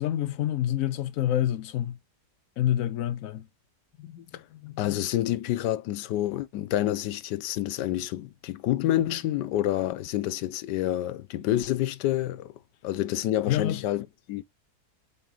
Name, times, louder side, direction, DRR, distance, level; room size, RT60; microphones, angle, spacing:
voice 1, 0.0-2.0 2.6-3.5 13.5-13.8, left 12 dB, 70° left, 0.9 m, -27 dB
voice 2, 4.0-12.5 12.8-14.4, left 13 dB, 85° left, 1.3 m, -28 dB
7.9 x 4.2 x 3.9 m
omnidirectional pair, 1.8 m